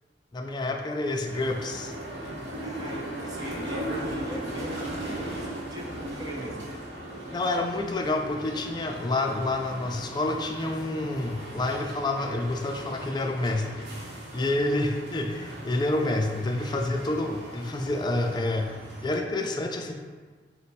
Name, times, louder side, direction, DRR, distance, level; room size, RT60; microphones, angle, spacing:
voice 1, 0.3-1.9 7.3-13.9 14.3-18.7 19.0-19.9, left 2 dB, 25° left, 3 dB, 0.3 m, -28 dB
sound 1, 1.2-19.2, right 1 dB, 70° right, 0.9 m, -38 dB
voice 2, 2.6-6.7, right 1 dB, 20° right, -1 dB, 0.6 m, -40 dB
5.1 x 2.1 x 4.0 m, 1.4 s
head